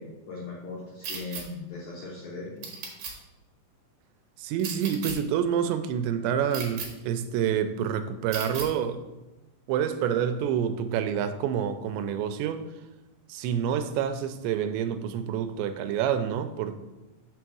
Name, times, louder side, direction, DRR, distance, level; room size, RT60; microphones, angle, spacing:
voice 1, 0.0-2.7, left 3 dB, 80° left, -4 dB, 1.7 m, -39 dB
sound 1, 1.0-1.4 2.6-3.1 4.6-5.1 6.5-6.9 8.3-8.7, right 5 dB, 70° right, 1.7 m, -35 dB
voice 2, 4.4-9.0 9.7-12.6 13.3-16.8, right 8 dB, 90° right, 9 dB, 2.8 m, -28 dB
6.7 x 3.5 x 6.1 m, 1.1 s
omnidirectional pair, 5.0 m